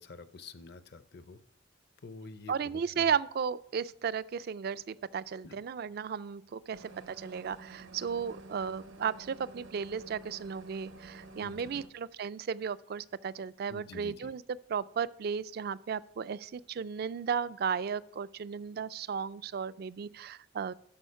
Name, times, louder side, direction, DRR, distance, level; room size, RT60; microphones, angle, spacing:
voice 1, 0.0-1.4 2.0-3.1 5.4-5.6 11.4-11.8 13.7-14.3, left 3 dB, 55° left, 13 dB, 0.6 m, -48 dB
voice 2, 2.5-14.4 14.7-20.7, right 7 dB, 50° right, 17 dB, 0.3 m, -35 dB
sound 1, 6.7-11.9, right 2 dB, 80° right, 0.9 m, -50 dB
12.5 x 5.0 x 5.5 m, 0.69 s
head